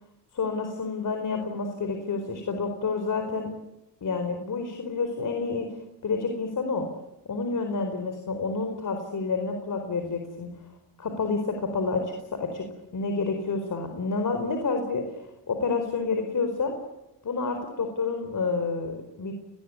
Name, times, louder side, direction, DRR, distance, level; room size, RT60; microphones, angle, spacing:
voice 1, 0.3-3.5 4.0-5.8 6.0-6.9 7.3-10.5 11.0-16.7 17.2-19.3, left 4 dB, 45° left, 5 dB, 4.6 m, -29 dB
29.5 x 21.0 x 9.7 m, 0.92 s
cardioid pair, 90°, 42 cm